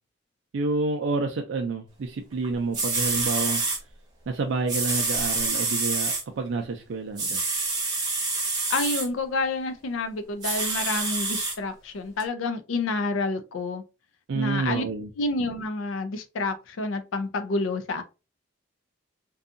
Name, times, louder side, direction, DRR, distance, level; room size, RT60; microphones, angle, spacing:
voice 1, 0.5-3.6 4.3-7.4 14.3-15.1, right 3 dB, 70° right, 0.4 m, -29 dB
sound 1, 2.4-2.5 2.7-3.8 4.7-6.2 7.2-9.1 10.4-11.5 12.2-12.3, right 3 dB, 20° right, 0.8 m, -27 dB
voice 2, 8.7-13.8 14.3-14.8 15.2-18.0, left 3 dB, 90° left, 0.4 m, -29 dB
2.6 x 2.3 x 2.5 m
head